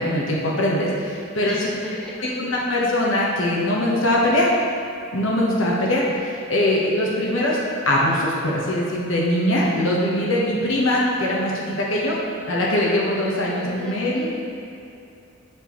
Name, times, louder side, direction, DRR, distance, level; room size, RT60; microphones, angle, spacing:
voice 1, 0.0-1.7 2.2-4.5 5.1-12.2 12.5-14.3, left 1 dB, 75° left, -4 dB, 1.2 m, -22 dB
voice 2, 1.4-2.4 13.5-14.3, equal, 5° left, -6 dB, 0.9 m, -35 dB
8.8 x 4.5 x 3.1 m, 2.8 s
head